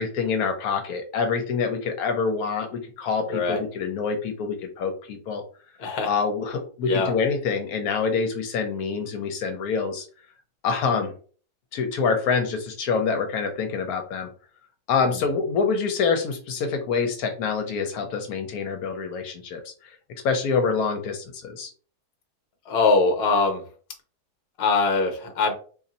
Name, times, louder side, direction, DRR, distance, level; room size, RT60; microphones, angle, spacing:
voice 1, 0.0-5.4 6.0-10.1 10.6-11.1 11.7-14.3 14.9-20.0 20.2-21.7, left 5 dB, 80° left, 6 dB, 1.1 m, -26 dB
voice 2, 3.3-3.6 5.8-6.1 6.8-7.1 22.7-23.6 24.6-25.5, left 3 dB, 50° left, 4 dB, 0.9 m, -22 dB
2.7 x 2.5 x 4.1 m, 0.41 s
omnidirectional pair, 1.6 m